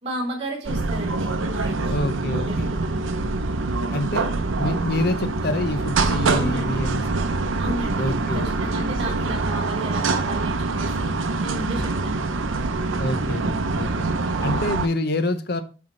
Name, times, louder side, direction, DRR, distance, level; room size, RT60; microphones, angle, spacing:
voice 1, 0.0-2.1 2.4-3.1 6.3-6.8 7.6-12.5, right 1 dB, 30° right, 3.1 m, -33 dB
sound 1, 0.7-14.9, right 3 dB, 80° right, 0.7 m, -25 dB
voice 2, 1.9-2.7 3.2-3.3 3.9-4.3 4.6-7.0 8.0-8.8 13.0-14.1 14.4-15.6, left 1 dB, 50° left, 0.8 m, -27 dB
7.9 x 4.7 x 4.3 m
head